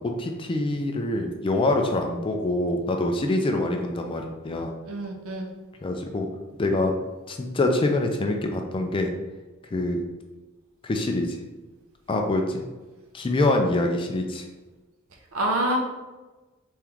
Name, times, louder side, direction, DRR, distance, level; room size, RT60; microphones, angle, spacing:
voice 1, 0.0-4.7 5.8-6.3 6.6-6.9 7.3-9.1 9.7-10.0 10.8-11.4 12.1-12.6 13.1-14.4, left 2 dB, 25° left, 3 dB, 0.3 m, -25 dB
voice 2, 4.8-5.5 15.3-15.8, right 1 dB, 70° right, 1 dB, 0.7 m, -26 dB
3.5 x 3.5 x 3.0 m, 1.2 s
head